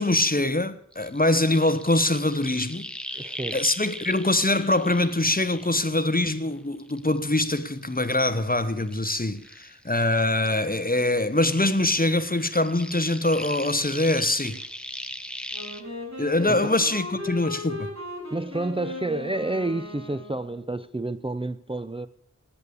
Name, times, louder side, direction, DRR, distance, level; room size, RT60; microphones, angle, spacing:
voice 1, 0.0-2.9 3.5-14.6 16.2-17.9, left 2 dB, 30° left, 1.1 m, -23 dB
sound 1, 0.9-6.4 6.8-10.1 10.4-15.8, equal, 5° left, 1.1 m, -40 dB
voice 2, 3.1-3.6 16.5-16.7 18.3-22.1, right 2 dB, 15° right, 0.5 m, -30 dB
Wind instrument woodwind instrument, 15.5-20.7, left 2 dB, 60° right, 6.0 m, -37 dB
18.0 x 8.6 x 6.8 m
wide cardioid pair, 40°, 31 cm